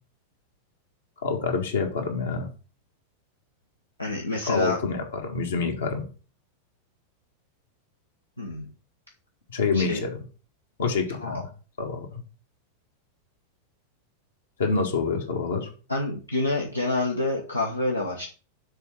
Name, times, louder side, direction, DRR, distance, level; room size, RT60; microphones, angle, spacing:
voice 1, 1.2-2.5 4.4-6.0 9.5-10.2 10.8-11.5 11.8-12.1 14.6-15.7, left 4 dB, 65° left, 3 dB, 1.7 m, -27 dB
voice 2, 4.0-4.8 8.4-8.6 9.7-10.0 11.2-11.4 15.9-18.3, left 2 dB, 85° left, 0 dB, 1.0 m, -27 dB
6.8 x 3.9 x 6.0 m, 0.36 s
figure-of-eight pair, 90°, 0 cm